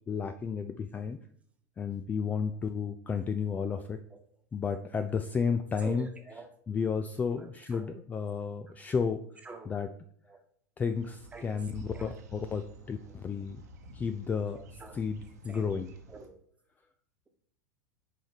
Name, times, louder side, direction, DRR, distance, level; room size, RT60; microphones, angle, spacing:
voice 1, 0.1-1.2 1.8-4.0 4.5-6.1 6.7-9.2 9.7-9.9 10.8-13.6 13.9-14.6 14.9-15.2 15.4-15.9, left 6 dB, 15° left, 8 dB, 0.4 m, -32 dB
voice 2, 5.8-6.5 7.3-8.0 8.3-8.4 9.4-9.8 10.2-10.4 11.3-11.6 11.9-12.2 14.5-15.0 15.5-15.7 16.1-16.4, right 3 dB, 15° right, 5 dB, 1.2 m, -47 dB
sound 1, 10.9-16.3, right 1 dB, 65° right, 1.2 m, -50 dB
7.4 x 5.0 x 4.0 m, 0.67 s
figure-of-eight pair, 90°, 9 cm